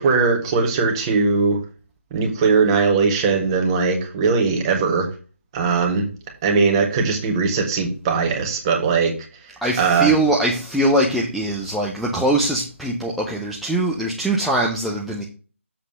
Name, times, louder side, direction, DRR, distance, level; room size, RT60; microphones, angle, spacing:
voice 1, 0.0-1.6 2.1-5.1 5.5-6.1 6.4-9.1 9.8-10.1, right 4 dB, 20° right, 2 dB, 1.6 m, -19 dB
voice 2, 9.6-15.2, right 1 dB, ahead, -4 dB, 0.7 m, -22 dB
7.5 x 3.9 x 6.5 m, 0.36 s
figure-of-eight pair, 155°, 7 cm